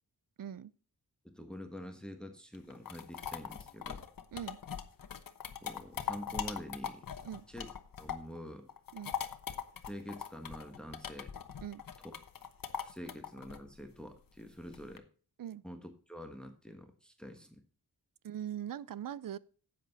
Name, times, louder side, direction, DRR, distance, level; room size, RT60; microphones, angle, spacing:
voice 1, 0.4-0.7 4.3-4.6 7.2-7.4 8.9-9.1 11.6-11.8 15.4-15.6 18.2-19.4, right 10 dB, 65° right, 0.6 m, -41 dB
voice 2, 1.2-4.0 5.6-7.0 7.5-7.7 8.0-8.7 9.8-11.3 12.1-12.2 12.8-15.0 15.6-17.6, equal, ahead, 1.3 m, -46 dB
sound 1, 2.5-8.4 8.7-15.0, left 8 dB, 65° left, 1.1 m, -41 dB
10.5 x 7.9 x 4.1 m
wide cardioid pair, 105°, 36 cm